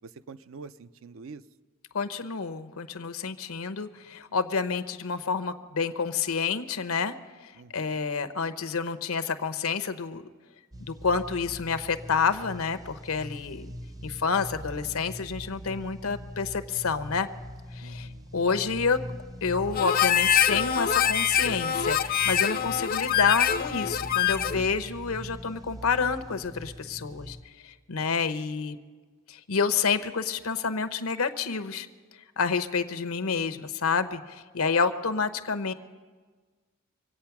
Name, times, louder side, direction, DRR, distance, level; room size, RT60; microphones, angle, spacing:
voice 1, 0.0-1.4 7.5-8.0 17.8-18.3, right 4 dB, 65° right, 13 dB, 0.5 m, -46 dB
voice 2, 1.9-7.1 7.4-10.2 10.8-13.7 14.0-17.3 17.7-19.0 19.4-27.4 27.6-28.8 29.3-31.9 32.4-35.7, left 5 dB, 80° left, 10 dB, 0.8 m, -29 dB
sound 1, 10.7-27.4, equal, 15° right, 0.6 m, -42 dB
Harmonica, 19.7-24.7, left 9 dB, 45° left, 0.4 m, -25 dB
25.5 x 8.6 x 5.9 m, 1.4 s
head